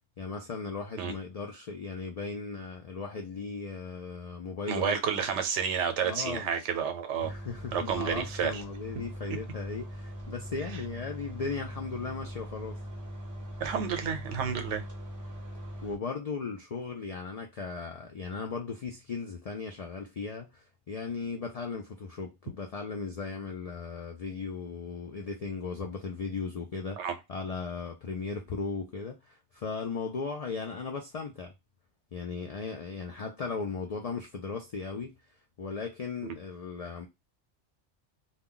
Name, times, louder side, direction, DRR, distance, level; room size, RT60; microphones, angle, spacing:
voice 1, 0.2-5.0 6.0-6.5 7.3-12.8 15.8-31.5 32.1-35.1 35.6-37.1, left 4 dB, 80° left, 0.3 m, -37 dB
voice 2, 4.7-7.3 7.7-8.6 13.6-14.8 27.0-27.2, right 7 dB, 75° right, 0.9 m, -30 dB
sound 1, 7.2-15.9, equal, 20° right, 0.6 m, -41 dB
2.3 x 2.1 x 3.7 m
omnidirectional pair, 1.2 m